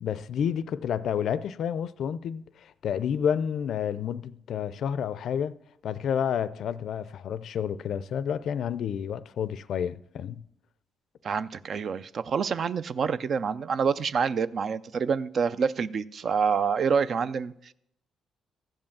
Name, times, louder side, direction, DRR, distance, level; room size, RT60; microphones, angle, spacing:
voice 1, 0.0-5.6 5.8-10.4, left 8 dB, 70° left, 0.4 m, -30 dB
voice 2, 11.2-17.7, right 6 dB, 55° right, 0.4 m, -27 dB
14.5 x 5.4 x 7.1 m
cardioid pair, 80°, 0 cm